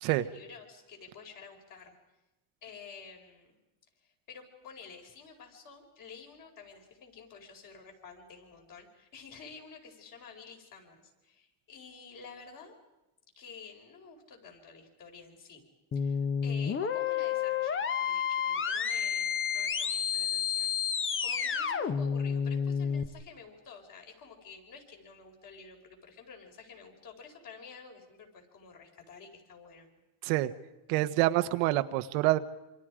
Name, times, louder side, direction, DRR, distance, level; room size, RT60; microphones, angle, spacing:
voice 1, 0.0-2.0 2.6-3.6 4.0-12.8 13.4-15.7 15.9-20.8 21.2-29.9, left 5 dB, 45° left, 1 dB, 5.4 m, -50 dB
sound 1, 15.9-23.1, left 7 dB, 25° left, 1.2 m, -30 dB
voice 2, 30.9-32.4, right 17 dB, 85° right, 11 dB, 1.3 m, -26 dB
27.5 x 26.0 x 5.1 m, 0.99 s
cardioid pair, 135°, 46 cm